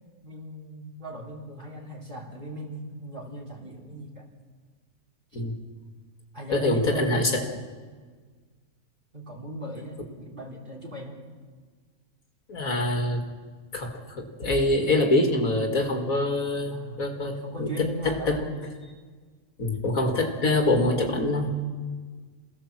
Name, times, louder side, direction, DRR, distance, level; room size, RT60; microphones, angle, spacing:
voice 1, 0.2-4.3 5.3-5.4 6.3-7.6 9.1-11.2 16.7-18.5, equal, 35° right, 1 dB, 4.0 m, -38 dB
voice 2, 6.5-7.5 12.5-13.3 13.7-18.4 19.6-21.5, left 2 dB, 65° left, 3 dB, 2.6 m, -25 dB
27.5 x 17.5 x 7.5 m, 1.5 s
omnidirectional pair, 1.6 m